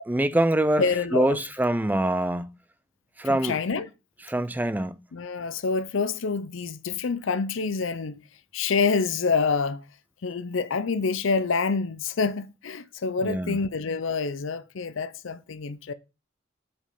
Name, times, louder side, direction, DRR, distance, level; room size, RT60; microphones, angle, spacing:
voice 1, 0.1-0.8 1.1-2.5 3.2-3.6 4.3-5.0 13.3-13.6, right 1 dB, 10° right, 0.4 m, -24 dB
voice 2, 0.8-1.4 3.2-3.9 5.1-8.2 8.5-9.9 10.2-15.9, left 4 dB, 65° left, 0.5 m, -27 dB
7.0 x 5.3 x 5.4 m
head